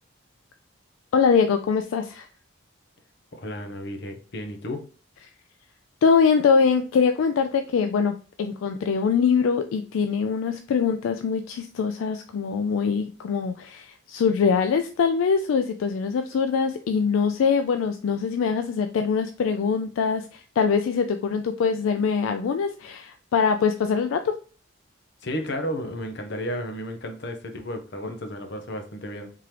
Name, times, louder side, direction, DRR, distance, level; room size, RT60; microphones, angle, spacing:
voice 1, 1.1-2.3 6.0-24.3, left 6 dB, 75° left, 0.3 m, -23 dB
voice 2, 3.3-4.9 25.2-29.3, equal, 55° left, 0.7 m, -33 dB
3.7 x 2.9 x 3.2 m
head